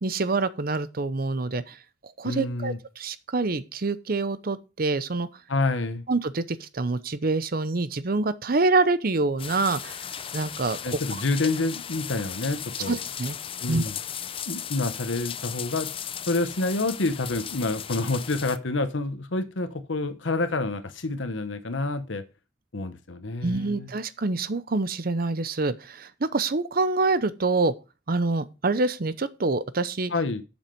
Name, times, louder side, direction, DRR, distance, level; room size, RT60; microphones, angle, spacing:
voice 1, 0.0-1.8 2.2-5.3 6.1-10.0 10.3-11.0 12.9-13.4 13.7-13.8 23.4-27.7 28.1-30.1, right 3 dB, 50° right, 0.7 m, -26 dB
voice 2, 2.2-2.8 5.5-6.0 10.8-13.0 13.6-13.9 14.5-15.9 16.3-22.2 22.7-23.9 30.1-30.4, left 2 dB, 75° left, 1.0 m, -28 dB
sound 1, 9.4-18.6, left 9 dB, 30° left, 0.5 m, -36 dB
7.5 x 7.3 x 5.2 m
head